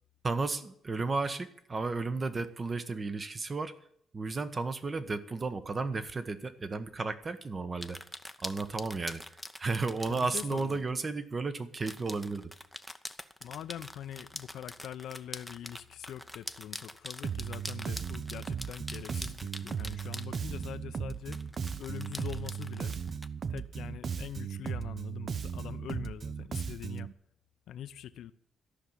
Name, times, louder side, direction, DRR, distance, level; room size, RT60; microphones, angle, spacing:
voice 1, 0.2-3.8 4.1-8.0 8.4-9.2 9.6-12.5, right 3 dB, 30° right, 1.1 m, -33 dB
sound 1, 7.8-10.8 11.8-20.7 21.3-23.3, equal, ahead, 0.8 m, -44 dB
voice 2, 10.1-10.8 13.4-21.4 21.8-22.9 23.5-27.1 27.7-28.3, left 10 dB, 75° left, 0.7 m, -43 dB
Bass guitar, 17.2-27.1, right 7 dB, 50° right, 0.6 m, -37 dB
13.5 x 5.9 x 9.6 m
cardioid pair, 90°, 0 cm